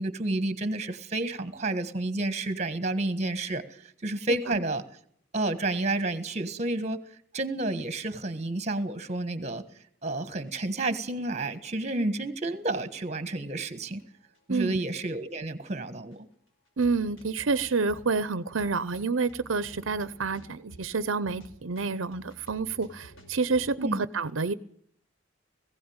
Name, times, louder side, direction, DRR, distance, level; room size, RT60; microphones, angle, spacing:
voice 1, 0.0-4.8 5.3-7.0 7.3-9.6 10.0-14.0 14.5-16.3 23.8-24.0, right 2 dB, 35° right, 13 dB, 1.5 m, -30 dB
sound 1, 8.3-9.1 9.4-9.5 10.1-10.2 10.5-10.6 11.0-11.9 12.6-13.0 13.2-13.3 14.0-14.4 14.7-14.8 15.1-15.2 15.8-15.9 16.1-16.2 16.7-23.7, right 1 dB, 85° left, 5.4 m, -52 dB
voice 2, 16.8-24.5, right 4 dB, 85° right, 16 dB, 0.7 m, -28 dB
19.0 x 16.0 x 8.8 m, 0.66 s
head